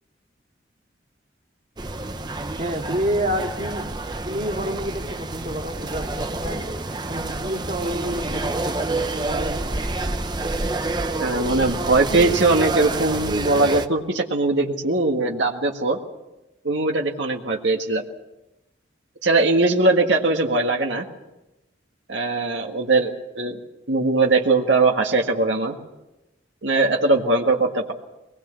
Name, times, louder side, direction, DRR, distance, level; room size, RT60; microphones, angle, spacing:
sound 1, 1.8-13.9, right 2 dB, 25° right, 0.9 m, -28 dB
voice 1, 2.6-4.0 4.3-6.6 7.1-9.8, equal, 40° right, 1 dB, 2.6 m, -29 dB
voice 2, 11.2-16.0 16.6-18.0 19.2-21.0 22.1-23.6 23.9-25.8 26.6-27.9, right 3 dB, 80° right, 1 dB, 1.8 m, -20 dB
23.0 x 20.0 x 7.0 m, 0.99 s
head